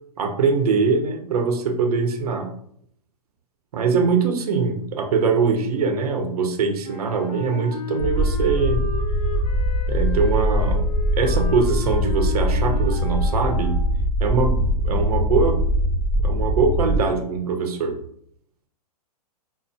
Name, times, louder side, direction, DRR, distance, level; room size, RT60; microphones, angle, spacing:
voice 1, 0.2-2.5 3.7-8.9 9.9-10.8 11.1-13.8 14.2-15.6 16.2-17.9, right 5 dB, 70° right, 5 dB, 0.7 m, -22 dB
Wind instrument woodwind instrument, 6.8-14.2, left 4 dB, 70° left, 0.6 m, -35 dB
sound 1, 8.0-17.0, equal, 15° right, 0.9 m, -22 dB
5.3 x 2.0 x 2.6 m, 0.67 s
hypercardioid pair, 125°, 20 cm